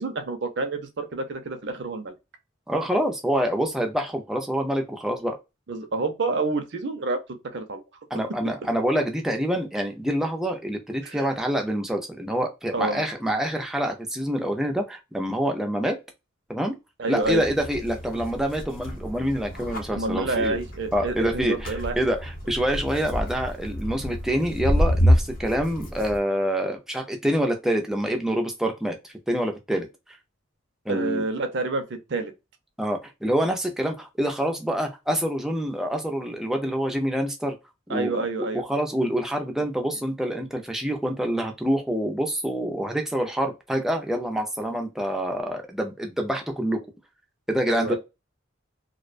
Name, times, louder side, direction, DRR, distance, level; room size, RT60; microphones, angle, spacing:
voice 1, 0.0-2.1 5.7-7.8 11.0-11.3 12.7-13.0 17.0-17.4 19.9-22.0 30.9-31.8 32.1-32.3 37.9-38.6 47.7-48.0, right 3 dB, 55° right, 0.5 m, -28 dB
voice 2, 2.7-5.4 8.1-16.0 16.5-16.7 17.1-20.6 20.9-29.9 30.9-31.2 32.8-37.6 37.9-38.1 38.4-46.8 47.5-48.0, equal, ahead, 0.4 m, -26 dB
sound 1, 17.2-26.2, equal, 45° left, 0.7 m, -28 dB
2.3 x 2.1 x 2.4 m
head